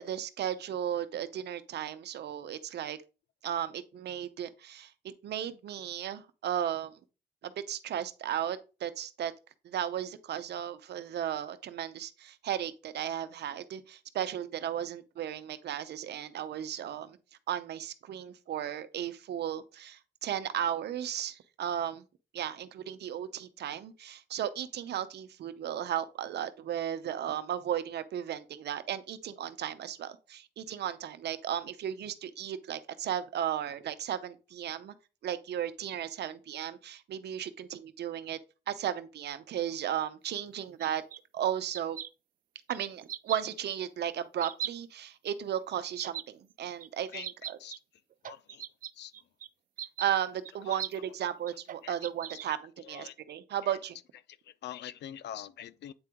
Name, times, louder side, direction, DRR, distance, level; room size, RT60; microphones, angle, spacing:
voice 1, 0.0-3.0 3.4-6.9 7.4-9.3 9.6-17.2 17.5-22.0 22.3-34.9 35.2-38.4 38.7-41.0 41.3-42.0 42.7-47.6 50.0-54.0, right 10 dB, 70° right, 0.8 m, -35 dB
sound 1, 40.2-41.2 41.7-42.1 42.7-42.8 43.0-43.4 43.7-43.8 44.4-44.7 45.3-45.4 46.0-46.2 46.8-46.9 47.1-47.8 48.1-49.5 49.8-50.1 50.4-51.0 51.5-52.5, right 10 dB, 50° right, 0.4 m, -39 dB
voice 2, 48.2-48.6 48.9-49.1 50.7-50.8 51.8-51.9 52.8-53.2 53.6-53.7 54.5-55.9, left 11 dB, 75° left, 0.5 m, -44 dB
8.8 x 3.8 x 3.6 m
cardioid pair, 100°, 18 cm